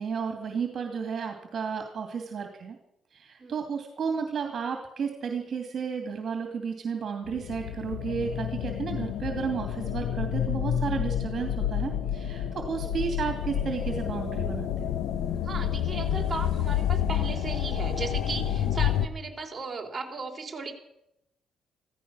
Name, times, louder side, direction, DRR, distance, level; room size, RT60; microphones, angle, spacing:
voice 1, 0.0-2.8 3.1-14.9, right 6 dB, 55° right, 5 dB, 2.6 m, -32 dB
sound 1, 7.3-19.1, left 10 dB, 85° left, 1.1 m, -29 dB
sound 2, 7.5-18.2, left 6 dB, 55° left, 1.8 m, -44 dB
voice 2, 15.4-20.7, right 4 dB, 30° right, 1 dB, 3.6 m, -36 dB
15.5 x 14.5 x 6.3 m, 0.81 s
cardioid pair, 90°, 0 cm